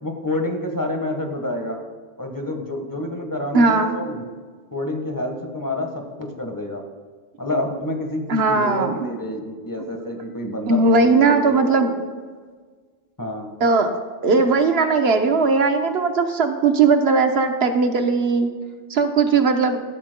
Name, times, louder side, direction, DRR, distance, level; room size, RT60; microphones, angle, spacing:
voice 1, 0.0-1.8 2.2-4.3 4.7-6.8 7.4-11.9 13.2-13.5, left 1 dB, 15° left, 2 dB, 1.4 m, -28 dB
voice 2, 3.5-3.9 8.3-9.1 10.7-11.9 13.6-13.9 14.2-18.5 18.9-19.8, right 4 dB, 65° right, 6 dB, 1.2 m, -18 dB
13.5 x 13.0 x 2.2 m, 1.5 s
omnidirectional pair, 1.2 m